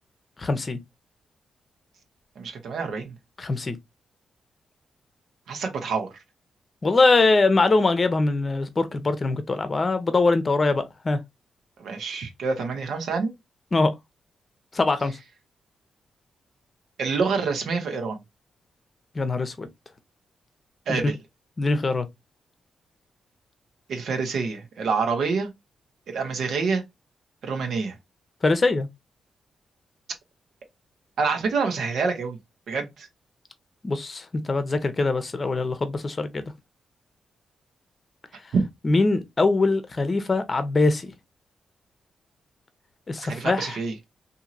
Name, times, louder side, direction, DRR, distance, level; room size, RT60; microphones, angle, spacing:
voice 1, 0.4-0.8 3.4-3.8 6.8-11.2 13.7-13.9 14.7-15.2 19.1-19.7 20.9-21.0 21.6-22.1 28.4-28.9 33.8-36.4 38.8-41.1 43.1-43.8, left 3 dB, 35° left, 0.7 m, -22 dB
voice 2, 2.4-3.1 5.5-6.1 11.8-13.3 17.0-18.2 20.9-21.2 23.9-25.5 26.1-26.8 27.4-27.9 31.2-32.4 32.7-33.1 38.5-38.6 43.2-43.9, right 4 dB, 80° right, 1.0 m, -27 dB
2.8 x 2.7 x 2.4 m
cardioid pair, 80°, 0 cm